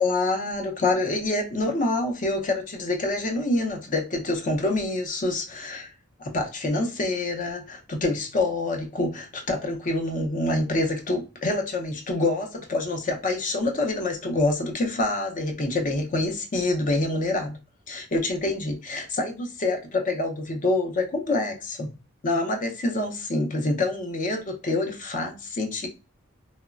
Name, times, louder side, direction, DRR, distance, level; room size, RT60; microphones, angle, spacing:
voice 1, 0.0-5.9 6.2-17.6 17.9-21.9 22.2-25.9, left 2 dB, 40° left, 4 dB, 0.5 m, -26 dB
2.9 x 2.1 x 2.3 m, 0.30 s
head